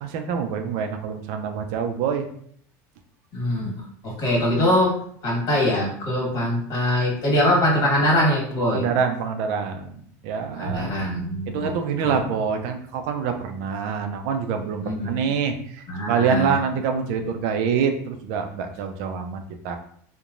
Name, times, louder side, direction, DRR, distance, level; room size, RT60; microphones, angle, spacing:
voice 1, 0.0-2.3 8.6-9.9 10.2-10.9 11.5-19.8, right 6 dB, 70° right, 6 dB, 0.4 m, -26 dB
voice 2, 3.3-3.7 4.0-8.9 10.5-11.8 12.0-12.2 14.8-15.1 15.9-16.6, left 1 dB, 45° left, -3 dB, 1.5 m, -23 dB
2.9 x 2.1 x 2.5 m, 0.63 s
supercardioid pair, 115°, 9 cm